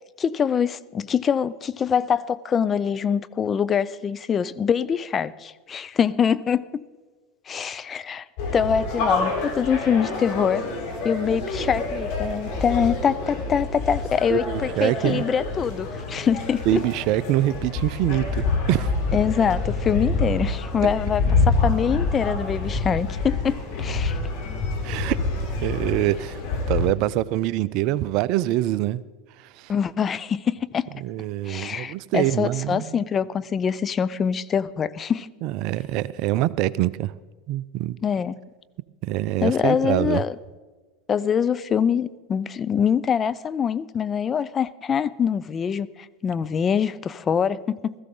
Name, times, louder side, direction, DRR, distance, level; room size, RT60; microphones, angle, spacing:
voice 1, 0.2-6.9 7.5-8.2 8.5-10.6 11.0-16.8 19.1-24.2 29.7-30.9 31.5-35.3 38.0-38.4 39.4-40.3 41.1-47.9, left 7 dB, 30° left, 16 dB, 0.5 m, -24 dB
sound 1, 8.4-26.9, left 3 dB, 60° left, 3.8 m, -27 dB
voice 2, 14.3-15.3 16.2-16.3 16.7-18.9 24.8-25.2 25.6-26.4 26.7-29.0 29.4-29.7 31.0-33.0 35.4-37.1 37.5-38.0 39.0-40.2, right 15 dB, 55° right, 19 dB, 0.4 m, -25 dB
16.5 x 14.5 x 3.8 m, 1.3 s
hypercardioid pair, 85°, 0 cm